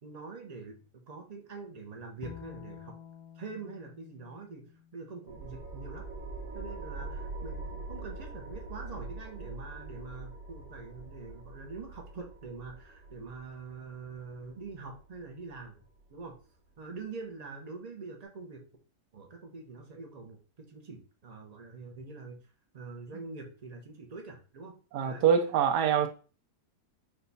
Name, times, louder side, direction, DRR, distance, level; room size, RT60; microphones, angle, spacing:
voice 1, 0.0-3.0 3.3-6.1 6.5-15.8 16.1-16.3 16.8-18.7 19.1-22.4 22.7-24.8 25.0-25.2 25.7-26.0, right 4 dB, 70° right, 0.3 m, -44 dB
Bowed string instrument, 2.2-5.5, left 9 dB, 70° left, 1.0 m, -49 dB
sound 1, 5.3-16.3, right 2 dB, 10° right, 0.5 m, -43 dB
voice 2, 24.9-26.1, right 7 dB, 90° right, 1.2 m, -24 dB
4.6 x 2.2 x 3.9 m
omnidirectional pair, 1.7 m